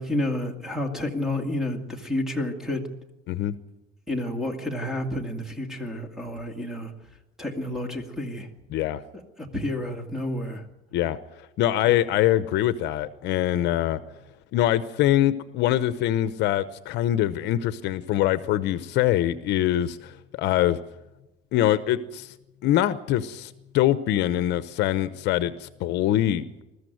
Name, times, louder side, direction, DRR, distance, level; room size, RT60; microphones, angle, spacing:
voice 1, 0.0-2.8 4.1-6.9 7.4-8.5 9.4-10.6 11.9-12.0, left 1 dB, ahead, 4 dB, 2.1 m, -30 dB
voice 2, 11.6-14.0 14.5-20.8 21.5-22.3 22.6-26.6, left 13 dB, 55° left, 13 dB, 0.8 m, -24 dB
21.0 x 14.0 x 9.2 m, 1.0 s
cardioid pair, 160°, 21 cm